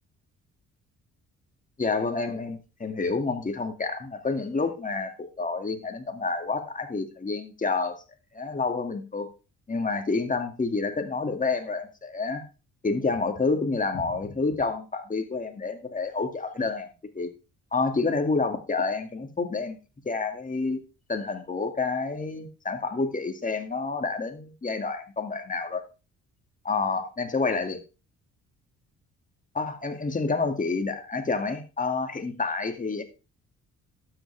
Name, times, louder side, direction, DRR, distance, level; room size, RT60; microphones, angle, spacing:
voice 1, 1.8-8.0 8.3-9.3 9.7-12.4 12.8-16.9 17.1-17.3 17.7-19.8 20.1-20.8 21.1-25.8 26.6-27.8 29.5-33.0, left 4 dB, 25° left, 5 dB, 2.2 m, -28 dB
12.0 x 8.8 x 3.4 m, 0.32 s
cardioid pair, 90°, 30 cm